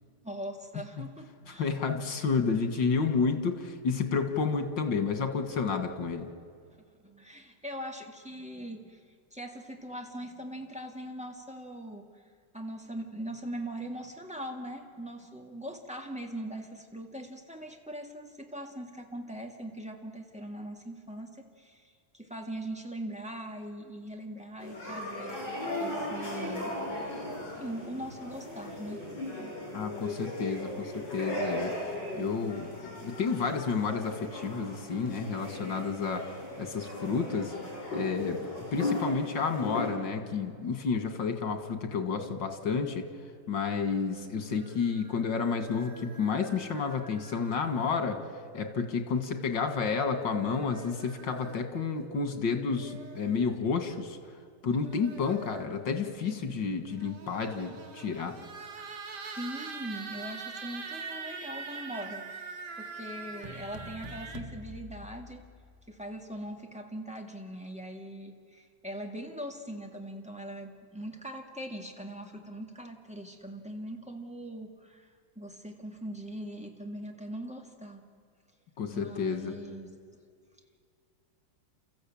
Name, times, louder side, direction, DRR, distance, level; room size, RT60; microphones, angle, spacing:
voice 1, 0.2-1.9 2.3-2.4 7.0-9.0 9.3-12.2 12.5-26.8 27.6-29.1 54.7-55.2 56.3-56.6 59.4-65.5 65.9-78.0 78.9-80.0, right 1 dB, 5° right, 2 dB, 1.8 m, -41 dB
voice 2, 1.6-6.3 29.7-31.7 32.1-36.2 36.6-37.5 37.9-38.4 38.7-43.0 43.5-48.2 48.5-54.2 54.6-58.3 78.8-79.5, left 5 dB, 90° left, 7 dB, 2.5 m, -30 dB
sound 1, 24.6-39.9, left 1 dB, 70° left, 7.0 m, -37 dB
sound 2, 44.5-48.2 49.4-51.7 52.6-53.6 54.7-55.8 56.8-64.4, right 4 dB, 70° right, 2.1 m, -44 dB
sound 3, 63.4-66.0, equal, 25° right, 1.1 m, -46 dB
29.5 x 14.5 x 8.7 m, 2.2 s
omnidirectional pair, 1.9 m